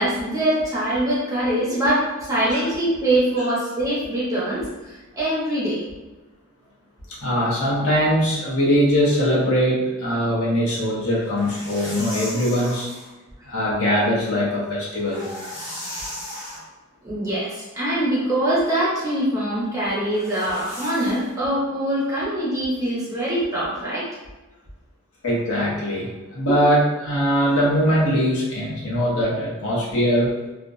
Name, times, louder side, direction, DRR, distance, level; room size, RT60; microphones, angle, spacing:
voice 1, 0.0-5.8 17.0-24.1 26.5-26.6, right 1 dB, 15° right, -8 dB, 0.9 m, -23 dB
voice 2, 7.1-12.9 13.4-15.2 25.2-30.3, equal, 85° left, -5 dB, 0.8 m, -21 dB
sound 1, 11.2-13.1 14.9-16.6 20.1-21.4, left 1 dB, 60° left, 0.9 m, -36 dB
2.4 x 2.1 x 2.5 m, 1.1 s
head